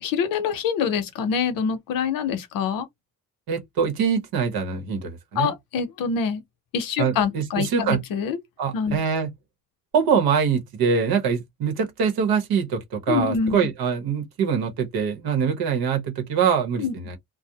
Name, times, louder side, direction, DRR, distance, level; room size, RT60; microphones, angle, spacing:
voice 1, 0.0-2.9 5.4-6.4 6.7-8.4 8.7-9.0 13.1-13.7 16.8-16.9, left 6 dB, 65° left, 0.7 m, -25 dB
voice 2, 3.5-5.5 7.0-8.0 8.6-9.3 9.9-17.2, right 6 dB, 80° right, 1.0 m, -24 dB
2.4 x 2.0 x 2.7 m
cardioid pair, 175°, 36 cm